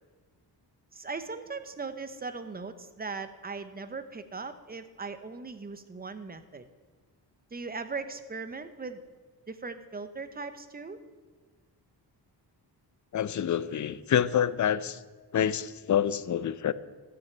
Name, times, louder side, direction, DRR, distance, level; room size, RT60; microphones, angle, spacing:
voice 1, 0.9-6.7 7.5-9.0 9.5-11.0, right 4 dB, 20° right, 10 dB, 0.9 m, -39 dB
voice 2, 13.1-15.0 15.3-16.7, left 9 dB, 45° left, 15 dB, 0.6 m, -27 dB
13.0 x 6.4 x 8.9 m, 1.4 s
cardioid pair, 125°, 43 cm